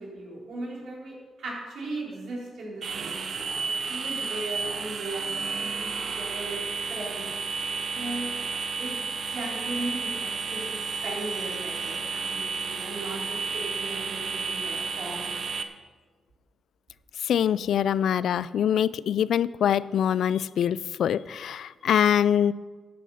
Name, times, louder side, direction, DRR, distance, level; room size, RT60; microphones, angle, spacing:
voice 1, 0.0-3.6 3.9-7.3 7.9-8.3 8.8-15.3, right 2 dB, 70° right, -3 dB, 4.2 m, -37 dB
sound 1, 2.8-15.6, right 5 dB, 55° right, 0.8 m, -32 dB
voice 2, 17.3-22.5, left 9 dB, 80° left, 19 dB, 0.3 m, -24 dB
13.0 x 8.4 x 5.7 m, 1.4 s
cardioid pair, 110°, 0 cm